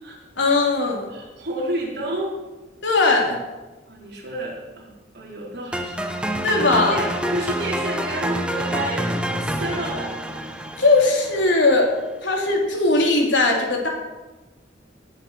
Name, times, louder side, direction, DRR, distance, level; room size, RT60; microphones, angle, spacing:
voice 1, 0.4-1.1 2.8-3.4 6.4-7.0 10.8-11.9 12.2-13.9, left 3 dB, 70° left, 0 dB, 3.5 m, -19 dB
voice 2, 1.1-2.4 3.9-6.0 6.9-10.1, right 1 dB, 60° right, -3 dB, 4.5 m, -30 dB
sound 1, 5.7-11.8, equal, 5° right, 1.0 m, -27 dB
18.5 x 8.4 x 6.3 m, 1.1 s
head